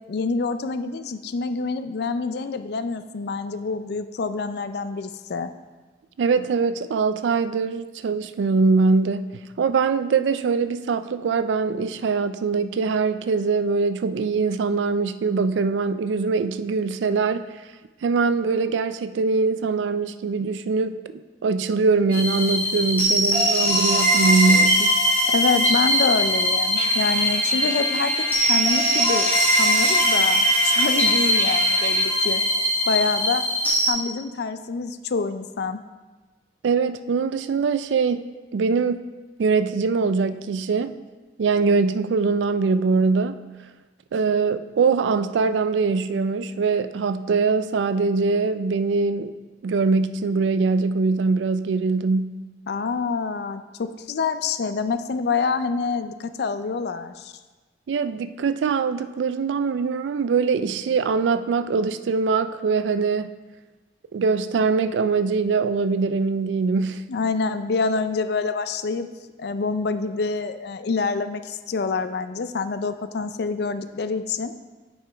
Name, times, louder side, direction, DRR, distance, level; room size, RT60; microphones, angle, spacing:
voice 1, 0.1-5.5 25.3-32.4 32.9-33.5 33.8-35.8 52.7-57.3 67.1-69.1 69.4-74.5, left 4 dB, 65° left, 11 dB, 0.4 m, -26 dB
voice 2, 6.2-9.3 9.6-17.4 18.0-24.9 36.6-38.2 38.5-39.0 39.4-41.0 41.4-43.4 44.1-49.3 49.6-52.4 57.9-63.3 64.1-67.0, right 4 dB, 90° right, 12 dB, 0.4 m, -22 dB
sound 1, 22.1-33.9, equal, 10° left, 1.5 m, -21 dB
Trumpet, 26.8-32.1, right 1 dB, 35° right, 0.7 m, -31 dB
8.9 x 5.4 x 3.4 m, 1.3 s
head